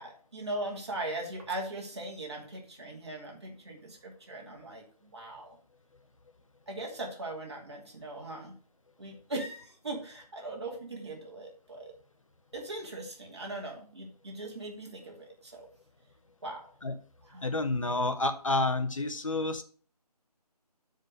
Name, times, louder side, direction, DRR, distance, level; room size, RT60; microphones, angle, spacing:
voice 1, 0.0-5.6 6.7-8.6 9.0-12.0 12.5-15.7 16.4-16.7 17.2-17.5, right 2 dB, 40° right, 0 dB, 2.6 m, -40 dB
voice 2, 17.4-19.6, left 2 dB, 55° left, 9 dB, 0.9 m, -29 dB
7.9 x 5.1 x 6.4 m, 0.43 s
figure-of-eight pair, 175°, 20 cm